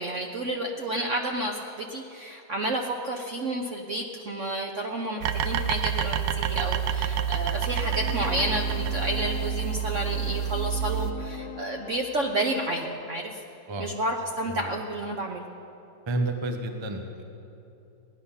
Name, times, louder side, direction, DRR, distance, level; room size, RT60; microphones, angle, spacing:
voice 1, 0.0-13.4 13.8-15.5, right 1 dB, 55° right, 2 dB, 0.9 m, -31 dB
sound 1, 5.2-11.1, right 8 dB, 85° right, 1.4 m, -28 dB
sound 2, 7.7-12.9, left 11 dB, 75° left, 0.8 m, -41 dB
voice 2, 16.1-17.3, right 2 dB, 25° right, 4 dB, 0.6 m, -31 dB
17.5 x 10.5 x 5.6 m, 2.9 s
omnidirectional pair, 2.1 m